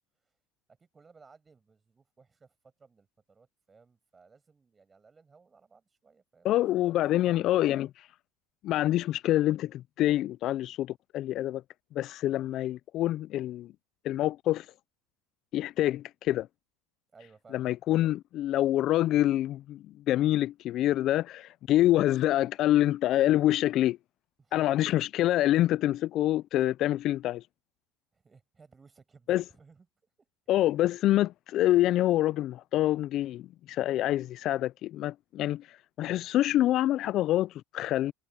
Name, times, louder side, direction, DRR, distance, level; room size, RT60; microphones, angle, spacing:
voice 1, 0.7-7.9 17.1-17.7 24.4-24.6 28.1-29.9 30.2-30.3, right 4 dB, 20° right, 6.6 m, -60 dB
voice 2, 6.4-7.9 8.6-11.6 12.0-13.7 14.0-14.7 15.5-16.5 17.5-24.0 24.5-27.4 29.3-29.4 30.5-35.7 36.0-38.1, left 14 dB, 55° left, 0.3 m, -26 dB
supercardioid pair, 105°, 0 cm